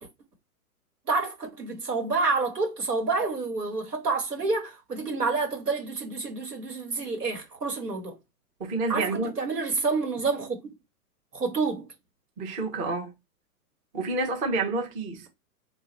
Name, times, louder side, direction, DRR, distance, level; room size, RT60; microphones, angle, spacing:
voice 1, 1.1-8.2 8.9-10.6 11.3-11.8, right 3 dB, 80° right, 1.7 m, -28 dB
voice 2, 8.6-9.3 12.4-13.1 13.9-15.3, right 3 dB, 15° right, 0.7 m, -29 dB
2.9 x 2.6 x 3.9 m
figure-of-eight pair, 115°, 46 cm